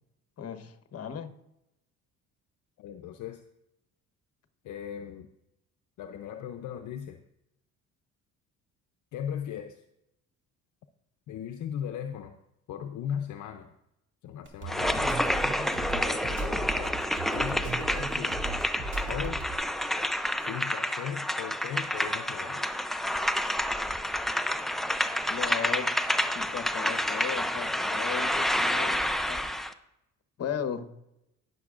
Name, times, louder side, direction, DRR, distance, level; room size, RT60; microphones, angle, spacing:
voice 1, 0.4-1.3 25.3-29.5 30.4-30.9, left 8 dB, 45° left, 10 dB, 1.0 m, -36 dB
voice 2, 2.8-3.4 4.6-5.3 6.0-7.2 9.1-9.8 11.3-12.4 12.7-13.7 14.2-15.2 15.7-18.4 19.1-19.5 20.4-22.7, left 9 dB, 60° left, 6 dB, 0.7 m, -38 dB
sound 1, 14.5-19.6, right 3 dB, 35° right, 2.1 m, -36 dB
sound 2, 14.7-29.7, equal, ahead, 0.5 m, -29 dB
18.0 x 6.9 x 2.5 m, 0.83 s
cardioid pair, 90°, 34 cm